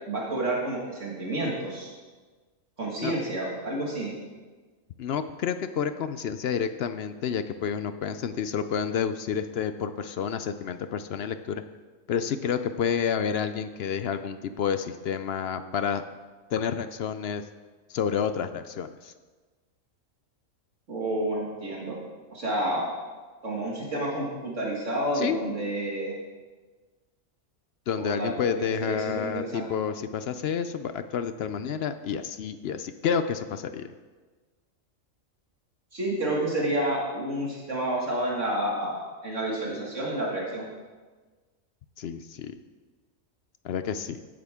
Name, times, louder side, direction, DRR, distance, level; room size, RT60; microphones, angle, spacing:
voice 1, 0.1-1.9 2.8-4.1 20.9-22.0 22.3-22.8 23.4-26.1 28.0-29.7 35.9-40.7, right 1 dB, 65° right, -4 dB, 2.4 m, -30 dB
voice 2, 5.0-11.6 12.1-16.0 16.5-17.4 17.9-19.1 25.1-25.5 27.9-33.9 42.0-42.5 43.6-44.2, left 7 dB, 65° left, 10 dB, 0.7 m, -29 dB
16.0 x 8.8 x 3.6 m, 1.4 s
omnidirectional pair, 1.4 m